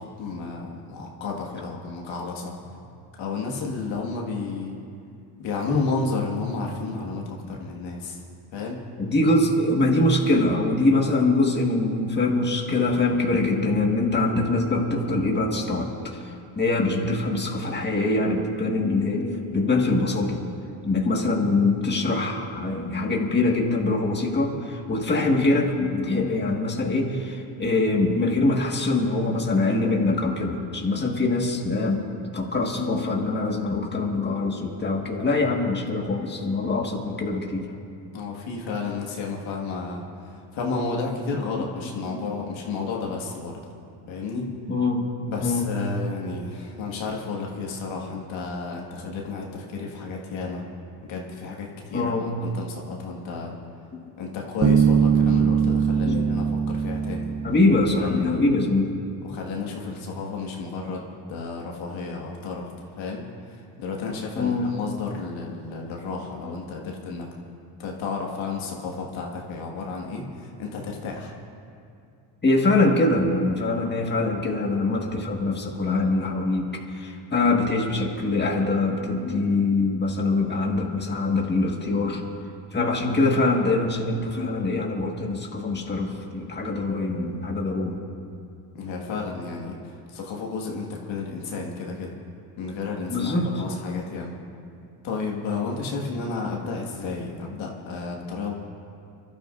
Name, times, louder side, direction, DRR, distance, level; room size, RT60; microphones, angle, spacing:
voice 1, 0.0-2.5 3.2-4.8 5.4-8.2 8.5-8.8 38.1-43.5 44.1-44.5 45.3-50.6 51.0-52.1 52.4-53.5 54.2-57.3 58.0-58.4 59.2-61.0 61.3-67.3 67.8-71.3 88.7-92.1 92.6-94.4 95.0-98.5, left 4 dB, 75° left, -1 dB, 1.9 m, -32 dB
voice 2, 9.0-16.2 16.6-20.4 20.8-32.0 32.3-37.7 42.1-42.3 44.4-45.1 45.4-45.7 51.9-52.3 53.9-54.0 56.0-56.4 57.4-58.9 64.4-64.7 72.4-76.7 76.9-82.2 82.7-88.0 93.1-93.5, left 2 dB, 20° left, 0 dB, 1.8 m, -23 dB
Bass guitar, 54.6-58.3, right 6 dB, 40° right, 1.0 m, -22 dB
29.0 x 12.0 x 2.6 m, 2.5 s
supercardioid pair, 85°, 47 cm